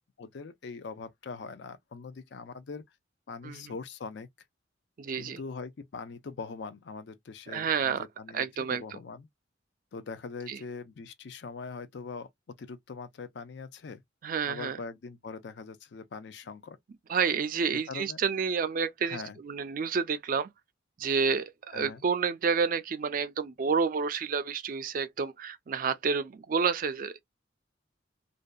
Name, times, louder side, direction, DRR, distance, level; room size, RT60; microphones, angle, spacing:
voice 1, 0.2-2.8 3.3-4.3 5.2-9.3 9.9-12.3 12.6-14.0 14.5-16.8 17.9-18.2 19.0-19.4 21.7-22.0, left 4 dB, 65° left, 0.4 m, -42 dB
voice 2, 5.0-5.4 7.5-8.0 8.3-9.0 10.5-10.6 14.2-14.8 17.1-20.5 21.0-27.2, right 6 dB, 45° right, 0.4 m, -29 dB
2.6 x 2.2 x 2.3 m
head